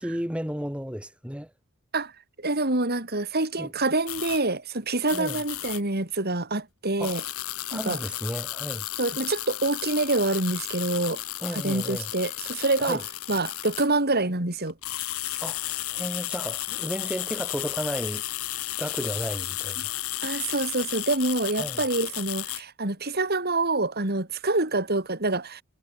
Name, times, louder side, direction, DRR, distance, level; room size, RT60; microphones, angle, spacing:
voice 1, 0.0-1.5 3.6-3.7 5.1-5.4 7.0-7.2 7.7-8.9 11.4-12.1 12.8-13.0 15.4-18.2 18.8-19.9 21.6-21.8, equal, 5° right, 3.1 m, -33 dB
voice 2, 2.4-7.2 7.7-8.0 9.0-11.2 11.5-13.0 13.3-14.7 20.2-25.6, right 2 dB, 45° right, 3.3 m, -26 dB
sound 1, 4.1-4.4 5.1-5.8 7.0-13.9 14.6-22.6, left 15 dB, 75° left, 2.2 m, -33 dB
head